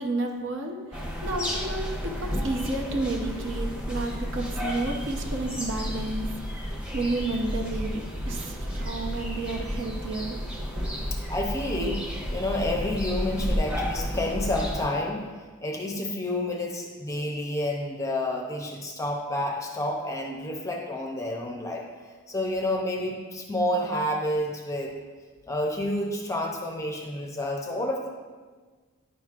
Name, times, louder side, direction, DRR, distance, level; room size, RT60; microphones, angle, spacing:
voice 1, 0.0-10.4, right 2 dB, 55° right, 2 dB, 0.8 m, -31 dB
sound 1, 0.9-14.8, equal, 5° right, 0.9 m, -32 dB
voice 2, 11.1-15.2 15.6-21.8 22.3-24.9 25.5-28.1, left 1 dB, 15° left, 1 dB, 0.6 m, -29 dB
9.9 x 6.1 x 2.4 m, 1.4 s
head